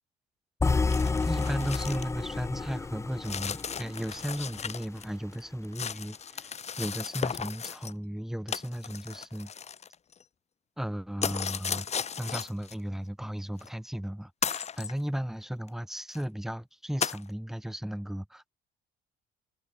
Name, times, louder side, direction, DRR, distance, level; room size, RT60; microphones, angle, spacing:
sound 1, 0.6-4.7, left 4 dB, 15° left, 0.7 m, -30 dB
sound 2, 0.9-2.1 2.4-2.5 3.2-5.1 5.3-7.9 8.5-10.2 11.2-12.7 13.6-13.7 14.4-14.9 15.7-15.8 16.1-16.2 17.0-17.2, left 7 dB, 40° left, 7.1 m, -35 dB
voice 1, 1.2-9.5 10.8-18.5, equal, ahead, 3.1 m, -35 dB
cardioid pair, 110°, 17 cm